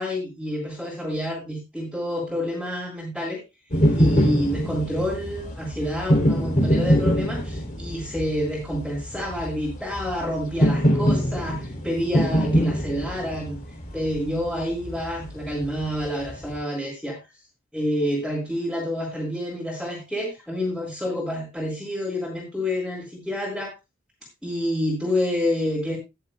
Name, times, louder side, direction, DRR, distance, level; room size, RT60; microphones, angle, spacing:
voice 1, 0.0-3.4 3.9-13.6 13.9-17.2 17.7-23.7 24.4-26.0, left 1 dB, ahead, -7 dB, 4.3 m, -28 dB
sound 1, 3.7-16.6, equal, 40° left, 3.4 m, -24 dB
20.0 x 7.5 x 2.3 m, 0.23 s
head